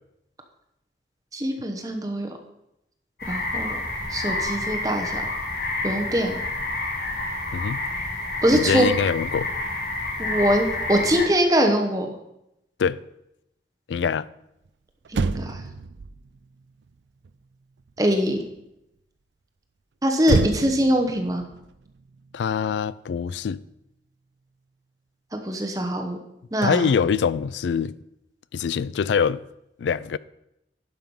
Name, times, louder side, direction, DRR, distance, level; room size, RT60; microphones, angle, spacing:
voice 1, 1.3-2.3 3.2-3.8 4.1-5.2 5.8-6.3 8.4-8.9 10.2-12.1 15.1-15.6 18.0-18.4 20.0-21.4 25.3-26.2 26.5-26.9, equal, 20° right, 1.0 m, -23 dB
sound 1, 3.2-11.2, left 2 dB, 60° left, 2.2 m, -29 dB
voice 2, 7.5-7.9 8.5-9.5 12.8-13.0 13.9-14.3 22.3-23.6 26.6-28.0 28.5-29.4 29.8-30.2, left 6 dB, 90° left, 0.3 m, -24 dB
Motor vehicle (road), 14.6-14.7 15.0-18.6 20.2-22.8 23.1-23.4, right 4 dB, 90° right, 0.4 m, -30 dB
11.5 x 5.8 x 5.4 m
head